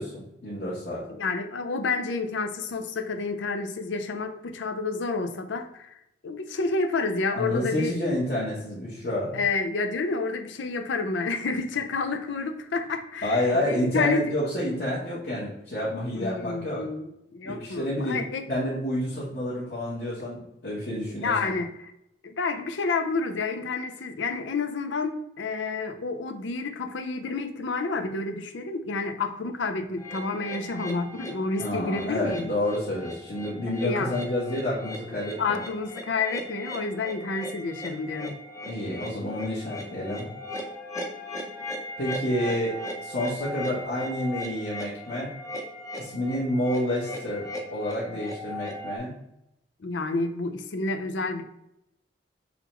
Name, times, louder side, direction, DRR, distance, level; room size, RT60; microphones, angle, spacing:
voice 1, 0.0-1.0 7.3-9.3 13.2-16.9 17.4-18.2 18.5-21.5 31.6-35.4 38.7-40.3 42.0-42.7 43.0-45.3 46.0-49.1, left 1 dB, 55° left, -8 dB, 1.3 m, -29 dB
voice 2, 1.1-5.9 6.2-8.0 9.3-14.2 16.1-18.4 21.2-21.9 22.2-32.5 33.8-34.1 35.4-38.4 49.8-51.4, left 4 dB, 85° left, 7 dB, 0.5 m, -29 dB
sound 1, 30.0-49.0, left 1 dB, 15° left, 0.6 m, -38 dB
4.0 x 3.0 x 4.4 m, 0.82 s
head